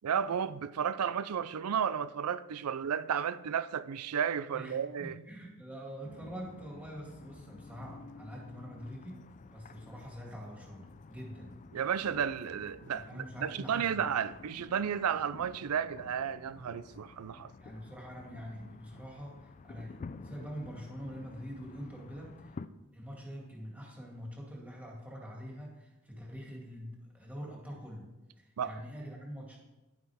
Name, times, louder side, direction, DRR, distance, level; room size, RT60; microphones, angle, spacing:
voice 1, 0.0-5.2 11.7-17.5 28.6-28.8, right 8 dB, 80° right, 0.4 m, -33 dB
voice 2, 4.5-9.2 9.5-11.5 12.9-14.1 17.6-22.6 22.9-28.1 28.4-29.6, equal, 5° right, 2.4 m, -45 dB
sound 1, 6.0-22.7, left 4 dB, 35° left, 0.3 m, -51 dB
11.0 x 9.5 x 3.5 m
head